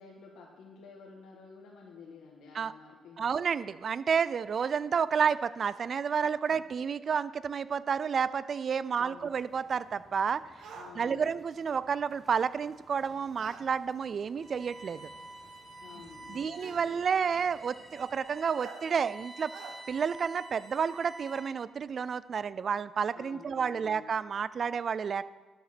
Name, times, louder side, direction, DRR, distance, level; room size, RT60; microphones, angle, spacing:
voice 1, 0.0-3.4 6.5-6.6 9.0-9.3 10.7-11.3 15.8-17.0 23.1-24.1, left 5 dB, 80° left, -2 dB, 1.4 m, -51 dB
voice 2, 3.2-10.5 11.0-15.1 16.3-19.5 19.9-25.2, right 6 dB, 50° right, 17 dB, 0.4 m, -30 dB
sound 1, 9.2-18.2, right 1 dB, 30° right, 2.7 m, -60 dB
sound 2, 10.6-10.9 13.4-13.7 14.9-15.0 16.6-16.9 18.6-18.8 19.5-19.8, right 6 dB, 75° right, 1.2 m, -46 dB
Bowed string instrument, 14.4-21.6, right 2 dB, 5° right, 3.3 m, -49 dB
12.5 x 5.6 x 6.0 m, 1.3 s
cardioid pair, 90°, 0 cm